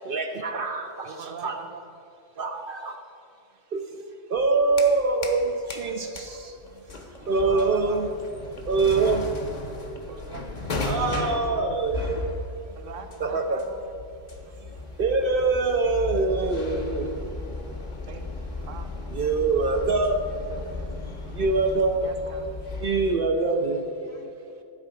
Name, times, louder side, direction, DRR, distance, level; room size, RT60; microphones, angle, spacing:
voice 1, 0.0-1.6 2.4-3.0 3.7-3.9 4.3-8.1 8.7-9.7 10.8-12.5 13.2-13.6 14.6-17.3 19.1-20.5 21.3-22.1 22.8-23.8, right 3 dB, 55° right, 5 dB, 0.8 m, -25 dB
voice 2, 1.0-1.8 7.2-8.2 8.5-8.7 10.0-10.4 11.6-11.8 12.7-13.8 14.3-14.4 18.1-19.0 22.0-22.5, right 6 dB, 85° right, 6 dB, 1.2 m, -42 dB
sound 1, 4.4-5.4 5.7-23.1, left 2 dB, 40° left, 1.0 m, -35 dB
voice 3, 5.6-7.3 20.7-21.0 23.5-24.6, left 4 dB, 60° left, 5 dB, 1.2 m, -54 dB
sound 2, 17.7-24.0, right 2 dB, 90° left, 2.2 m, -50 dB
12.5 x 4.8 x 7.7 m, 2.5 s
omnidirectional pair, 1.3 m